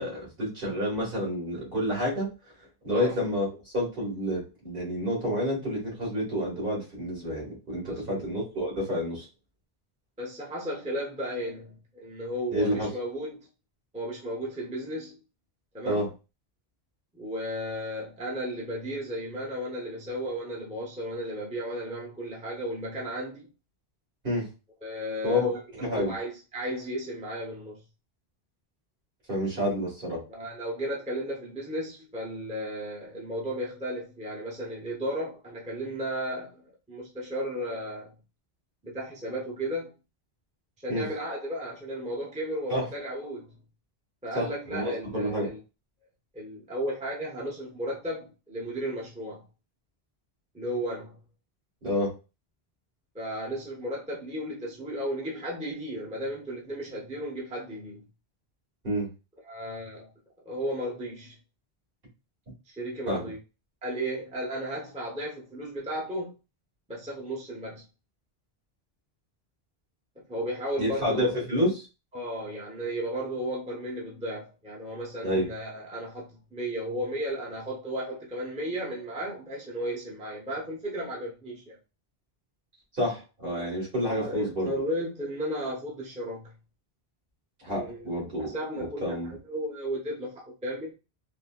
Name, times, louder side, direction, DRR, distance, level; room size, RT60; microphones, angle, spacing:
voice 1, 0.0-2.3 2.8-3.5 3.7-9.3 12.5-12.9 15.9-16.1 24.2-24.5 25.2-26.1 29.3-30.2 40.9-41.1 42.7-42.9 44.3-45.5 51.8-52.1 58.8-59.1 63.1-63.2 70.8-71.9 75.2-75.5 83.0-84.7 87.6-88.5 88.7-89.3, equal, 55° right, 1.8 m, -29 dB
voice 2, 7.8-8.3 10.2-13.4 13.9-15.2 15.7-16.1 17.1-23.5 24.8-25.6 25.9-27.8 30.3-38.1 38.8-39.9 40.8-43.5 44.2-45.6 46.3-49.4 50.5-51.2 53.1-58.0 59.4-60.1 60.4-61.4 62.7-63.4 63.8-66.3 66.9-67.8 70.2-71.3 72.1-81.8 84.0-86.5 87.7-88.1 88.4-90.9, equal, 10° right, 0.7 m, -34 dB
4.1 x 2.1 x 2.2 m
omnidirectional pair, 1.1 m